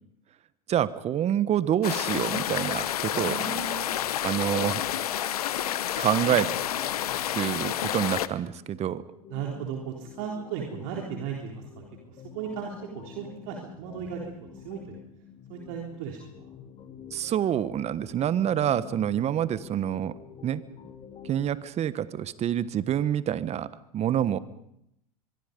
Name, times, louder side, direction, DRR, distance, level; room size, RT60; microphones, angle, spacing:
voice 1, 0.7-3.4 4.2-4.8 6.0-6.5 7.3-9.0 17.1-20.1 20.4-20.6 21.2-23.7 23.9-24.4, right 10 dB, 35° right, 16 dB, 1.2 m, -27 dB
sound 1, 1.8-8.3, left 11 dB, 80° left, 1.0 m, -29 dB
voice 2, 3.1-3.9 9.3-11.8 12.1-14.2 14.5-15.0 15.5-16.2, right 7 dB, 60° right, 0 dB, 3.7 m, -36 dB
sound 2, 3.4-21.5, left 7 dB, 30° left, 3.5 m, -48 dB
23.5 x 23.5 x 5.3 m, 0.77 s
hypercardioid pair, 90°, 19 cm